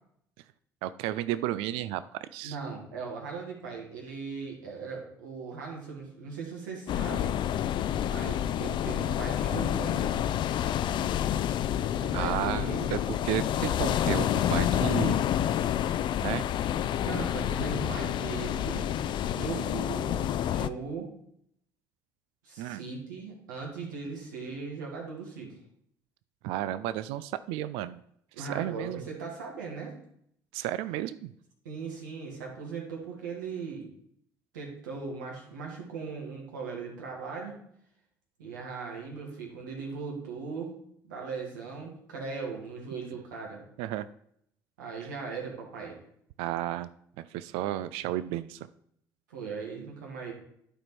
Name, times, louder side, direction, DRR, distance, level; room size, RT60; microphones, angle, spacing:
voice 1, 0.8-2.6 12.1-15.2 16.2-16.5 22.6-22.8 26.4-28.0 28.4-29.0 30.5-31.3 43.8-44.1 46.4-46.9 47.3-48.6, right 13 dB, 70° right, 15 dB, 0.4 m, -33 dB
voice 2, 2.4-7.3 8.0-10.2 12.0-13.0 17.0-18.9 19.2-21.1 22.4-25.5 28.4-29.9 31.6-33.9 34.5-37.6 38.4-40.8 41.1-43.7 44.8-46.0 49.3-50.3, right 5 dB, 85° right, 0 dB, 2.2 m, -39 dB
sound 1, 6.9-20.7, left 10 dB, 50° left, 0.4 m, -28 dB
11.5 x 4.5 x 4.5 m, 0.69 s
hypercardioid pair, 65°, 10 cm